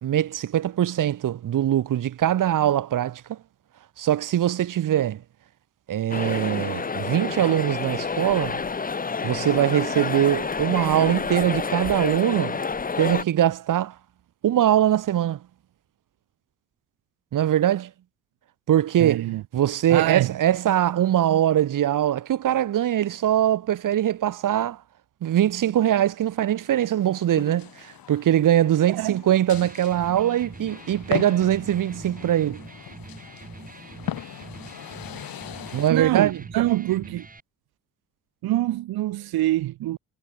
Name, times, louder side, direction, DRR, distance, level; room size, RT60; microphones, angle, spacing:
voice 1, 0.0-3.4 4.0-5.2 5.9-8.6 9.2-12.6 13.0-13.9 14.4-15.4 17.3-17.9 18.7-19.3 19.5-24.8 25.2-32.6 35.7-36.4, right 11 dB, 60° right, 1.3 m, -22 dB
sound 1, 6.1-13.2, left 5 dB, 25° left, 1.1 m, -29 dB
voice 2, 19.0-19.4 19.9-20.3 28.9-29.2 35.9-37.3 38.4-40.0, right 15 dB, 85° right, 1.6 m, -25 dB
sound 2, 26.3-35.9, left 11 dB, 70° left, 5.6 m, -39 dB
Electric guitar, 29.4-37.4, right 3 dB, 25° right, 6.6 m, -43 dB
cardioid pair, 100°, 36 cm